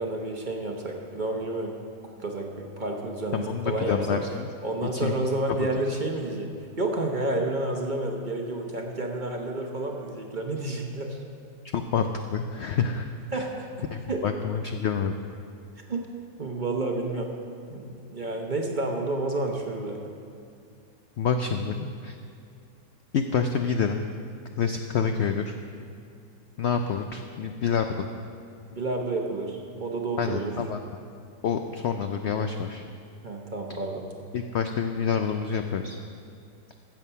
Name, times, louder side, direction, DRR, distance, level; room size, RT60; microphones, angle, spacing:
voice 1, 0.0-1.8 2.2-4.2 4.6-6.5 6.8-11.2 13.3-13.7 14.1-14.2 15.9-16.1 16.4-17.3 17.7-20.0 28.7-30.5 33.2-34.0, right 2 dB, 35° right, 1 dB, 0.9 m, -30 dB
voice 2, 3.3-4.5 4.9-5.2 5.6-5.7 11.7-13.1 13.3-13.4 13.9-15.1 21.2-22.2 23.1-24.0 24.6-25.5 26.6-28.1 30.2-30.8 31.4-32.8 34.3-36.0, left 6 dB, 80° left, 6 dB, 0.6 m, -27 dB
15.0 x 7.2 x 5.6 m, 2.4 s
omnidirectional pair, 1.7 m